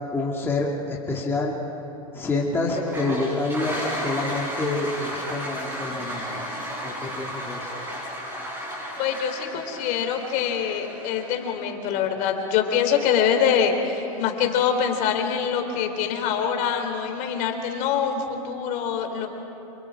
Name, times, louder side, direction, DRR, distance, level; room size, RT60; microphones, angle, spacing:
voice 1, 0.1-1.5 2.1-6.4 6.8-7.7, left 2 dB, 10° left, -3 dB, 2.4 m, -27 dB
Toilet flush, 2.7-11.6, equal, 15° right, 7.9 m, -33 dB
voice 2, 9.0-19.3, left 7 dB, 45° left, 5 dB, 3.4 m, -24 dB
29.5 x 28.0 x 4.9 m, 3.0 s
supercardioid pair, 135°, 19 cm